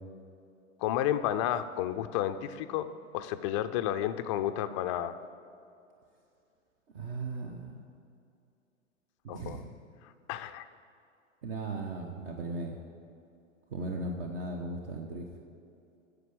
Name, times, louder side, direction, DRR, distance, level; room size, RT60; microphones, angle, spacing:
voice 1, 0.8-5.2 9.3-9.6 10.3-10.7, left 11 dB, 25° left, 10 dB, 0.3 m, -31 dB
voice 2, 6.9-7.8 9.3-9.7 11.4-12.8 13.7-15.4, right 2 dB, 45° right, 2 dB, 1.1 m, -37 dB
9.8 x 6.9 x 7.7 m, 2.6 s
figure-of-eight pair, 100°, 40 cm